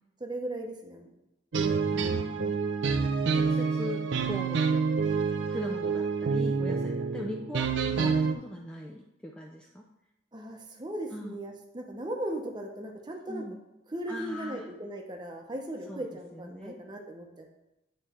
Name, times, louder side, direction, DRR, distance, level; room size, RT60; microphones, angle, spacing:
voice 1, 0.2-1.1 10.3-13.4 13.9-17.5, right 1 dB, 20° right, 2 dB, 0.7 m, -37 dB
sound 1, 1.5-8.3, right 5 dB, 65° right, 0.5 m, -28 dB
voice 2, 1.9-2.5 3.3-4.6 5.5-9.8 11.1-11.4 13.3-13.6 14.1-14.6 15.9-16.0 16.3-16.8, left 1 dB, 5° left, -1 dB, 0.3 m, -39 dB
9.1 x 3.1 x 4.3 m, 0.94 s
head